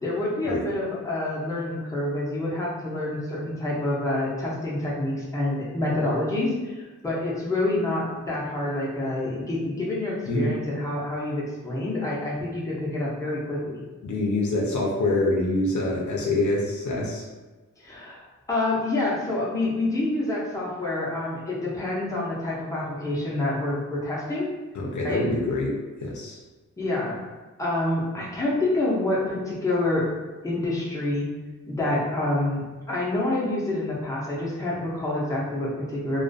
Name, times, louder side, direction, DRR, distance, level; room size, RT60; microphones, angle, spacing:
voice 1, 0.0-13.8 17.8-18.2 18.5-24.5 25.0-25.2 26.8-27.2 27.6-30.1 30.4-31.3 31.7-36.2, left 2 dB, 10° left, -6 dB, 0.6 m, -27 dB
voice 2, 14.0-17.3 24.7-26.4, left 2 dB, 70° left, -2 dB, 0.6 m, -25 dB
2.3 x 2.2 x 2.5 m, 1.2 s
wide cardioid pair, 115°, 31 cm